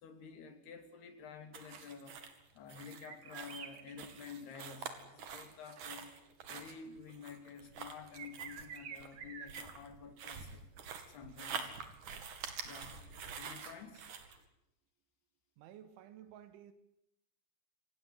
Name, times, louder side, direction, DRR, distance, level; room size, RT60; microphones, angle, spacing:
voice 1, 0.0-2.3 2.5-6.1 6.5-10.7 11.1-11.8 12.7-14.1, left 6 dB, 60° left, 8 dB, 4.7 m, -51 dB
sound 1, 1.5-14.4, right 6 dB, 50° right, 3.2 m, -47 dB
sound 2, 2.9-4.7 6.0-6.1 8.1-9.6, right 7 dB, 65° right, 1.3 m, -49 dB
voice 2, 15.6-16.7, right 10 dB, 85° right, 12 dB, 3.7 m, -54 dB
28.0 x 17.5 x 9.9 m, 0.85 s
omnidirectional pair, 5.4 m